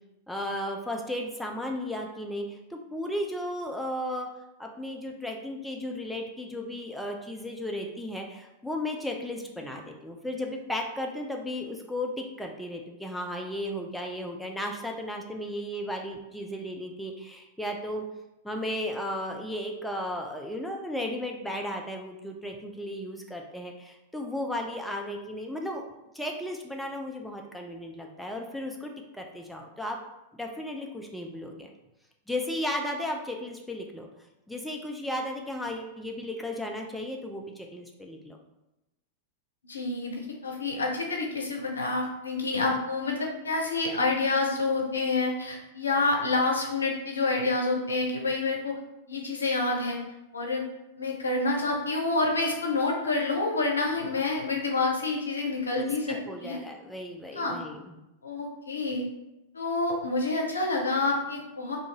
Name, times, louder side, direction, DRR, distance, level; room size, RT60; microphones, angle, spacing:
voice 1, 0.3-4.3 4.6-18.0 18.4-25.8 26.1-30.0 30.4-31.7 32.3-34.1 34.5-38.4 55.8-58.0, left 1 dB, 5° left, 1 dB, 0.3 m, -35 dB
voice 2, 39.7-48.7 49.1-50.0 50.3-50.6 51.0-56.6 57.4-57.6 58.2-59.1 59.5-61.8, left 3 dB, 80° left, 1 dB, 0.5 m, -28 dB
2.5 x 2.3 x 2.8 m, 0.94 s
figure-of-eight pair, 95°, 0 cm